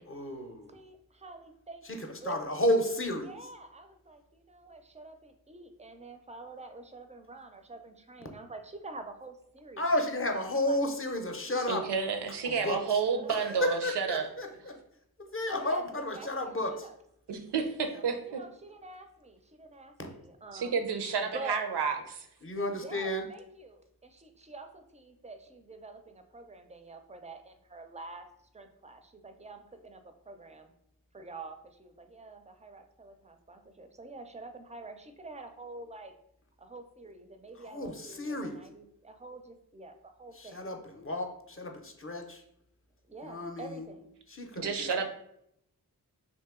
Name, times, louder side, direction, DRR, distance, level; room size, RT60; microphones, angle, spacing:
voice 1, 0.0-0.8 1.9-2.0 2.2-3.3 9.8-11.8 12.6-12.8 13.6-14.8 15.2-16.7 22.4-23.2 37.6-38.6 40.3-42.4 43.2-43.8 44.3-44.9, left 1 dB, 35° left, 4 dB, 0.6 m, -32 dB
voice 2, 0.7-2.5 3.3-10.8 11.4-13.7 15.5-17.0 17.9-21.6 22.7-28.3 28.5-30.7 31.1-36.1 36.6-40.6 43.1-44.1 44.8-45.1, right 3 dB, 20° right, 7 dB, 0.4 m, -47 dB
voice 3, 11.5-14.3 17.3-18.4 20.5-22.3 44.5-45.1, right 5 dB, 85° right, 5 dB, 0.5 m, -31 dB
2.8 x 2.6 x 3.6 m, 0.74 s
cardioid pair, 45°, 39 cm